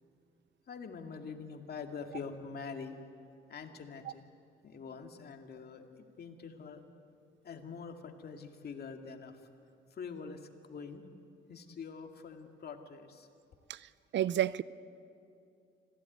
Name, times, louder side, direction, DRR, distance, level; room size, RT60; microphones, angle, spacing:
voice 1, 0.7-3.0 3.5-4.2 4.6-6.8 7.4-9.4 9.9-11.1 11.5-13.3, left 5 dB, 55° left, 2.3 m, -45 dB
voice 2, 14.1-14.6, right 11 dB, 65° right, 0.6 m, -29 dB
26.0 x 16.0 x 9.4 m
cardioid pair, 90°, 20 cm